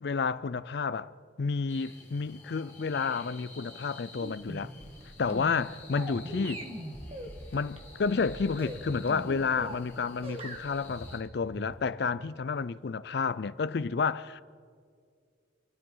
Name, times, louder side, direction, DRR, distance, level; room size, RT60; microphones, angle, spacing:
voice 1, 0.0-1.1 1.4-4.7 5.2-6.6 7.5-14.4, left 5 dB, 55° left, 0.4 m, -30 dB
sound 1, 1.7-11.2, left 2 dB, 10° left, 2.2 m, -51 dB
sound 2, 4.2-9.9 10.2-12.1, right 1 dB, 30° right, 1.4 m, -41 dB
27.0 x 13.5 x 3.9 m
head